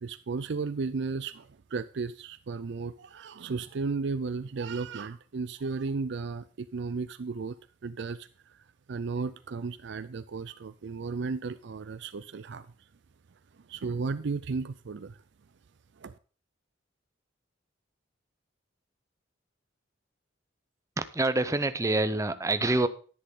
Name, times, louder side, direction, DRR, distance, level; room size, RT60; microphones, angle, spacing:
voice 1, 0.0-7.6 7.8-8.3 8.9-12.7 13.7-15.2 16.0-16.1, right 4 dB, 65° right, 13 dB, 0.5 m, -34 dB
voice 2, 21.0-22.9, right 2 dB, 15° right, 11 dB, 0.7 m, -26 dB
10.5 x 10.0 x 3.7 m, 0.39 s
head